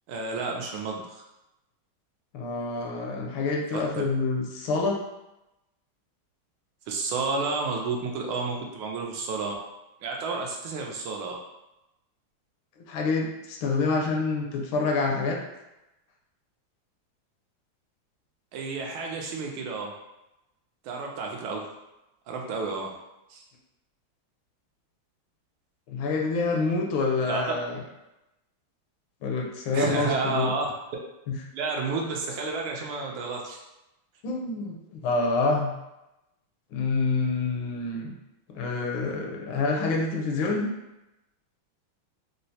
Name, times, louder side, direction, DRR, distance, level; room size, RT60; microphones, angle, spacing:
voice 1, 0.1-1.2 3.7-3.8 6.9-9.5 10.0-11.4 18.5-19.9 20.8-21.7 22.3-22.9 23.3-23.4 27.3-27.6 29.7-30.7 31.5-33.6, right 4 dB, 90° right, 1 dB, 1.5 m, -31 dB
voice 2, 2.3-5.0 12.9-15.4 25.9-27.8 29.2-30.6 34.2-35.7 36.7-38.1 38.5-40.7, left 3 dB, 80° left, 0 dB, 1.3 m, -27 dB
4.4 x 2.1 x 2.7 m, 0.93 s
omnidirectional pair, 2.3 m